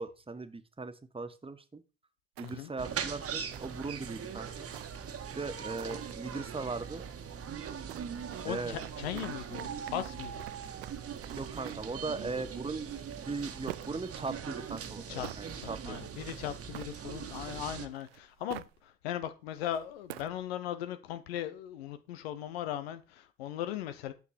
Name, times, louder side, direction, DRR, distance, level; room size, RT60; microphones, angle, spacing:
voice 1, 0.0-1.8 2.4-4.6 5.3-7.1 8.4-8.8 11.4-13.0 13.2-16.0, right 3 dB, 20° right, 1.5 m, -39 dB
sound 1, 2.4-2.9 3.5-4.1 4.7-5.2 5.8-6.1 7.9-12.0 13.0-14.1 14.6-15.4 16.2-17.3 17.9-18.8 19.5-20.4, right 16 dB, 85° right, 0.5 m, -48 dB
sound 2, 2.8-17.9, right 7 dB, 50° right, 1.6 m, -41 dB
voice 2, 8.4-10.4 15.1-15.3 15.5-24.1, left 11 dB, 80° left, 0.8 m, -38 dB
11.5 x 7.0 x 4.4 m
figure-of-eight pair, 45°, 30 cm